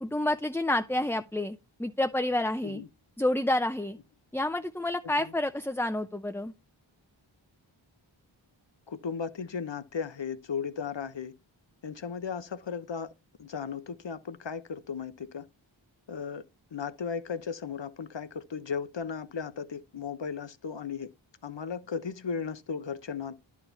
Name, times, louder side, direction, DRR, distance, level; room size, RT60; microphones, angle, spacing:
voice 1, 0.0-2.8 3.2-4.0 4.3-6.5, left 1 dB, 5° left, 0.7 m, -29 dB
voice 2, 8.9-11.3 11.8-13.1 13.4-15.5 16.1-16.4 16.7-21.1 21.4-23.4, left 6 dB, 65° left, 0.9 m, -36 dB
11.0 x 4.8 x 5.6 m
wide cardioid pair, 45°, 48 cm